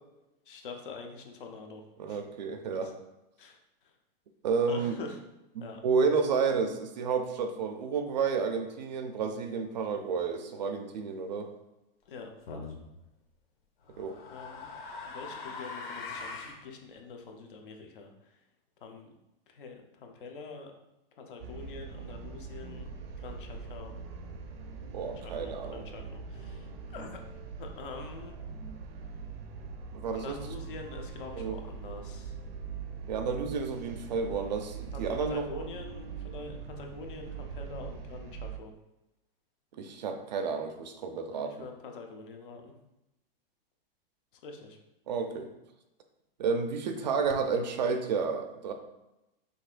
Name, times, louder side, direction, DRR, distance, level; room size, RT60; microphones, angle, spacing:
voice 1, 0.5-2.2 2.8-2.9 3.4-3.9 4.7-5.2 5.6-5.8 12.1-12.3 14.3-14.7 15.0-18.4 18.8-19.1 19.5-20.7 21.2-22.9 23.2-23.9 25.2-27.2 27.6-28.3 30.1-32.4 34.9-38.7 41.3-42.7 44.3-44.8, left 4 dB, 60° left, 3 dB, 0.8 m, -45 dB
voice 2, 2.0-2.9 4.4-4.9 5.6-11.5 14.0-14.2 24.9-25.8 29.9-30.3 31.4-31.6 33.1-35.6 39.8-41.7 45.1-45.5 46.4-48.7, right 5 dB, 50° right, 6 dB, 0.5 m, -31 dB
sound 1, 12.5-12.8 13.9-16.6, left 4 dB, 80° left, 1.1 m, -41 dB
sound 2, 21.4-38.6, right 5 dB, 85° right, 0.7 m, -42 dB
5.5 x 3.3 x 2.5 m, 0.95 s
supercardioid pair, 180°, 29 cm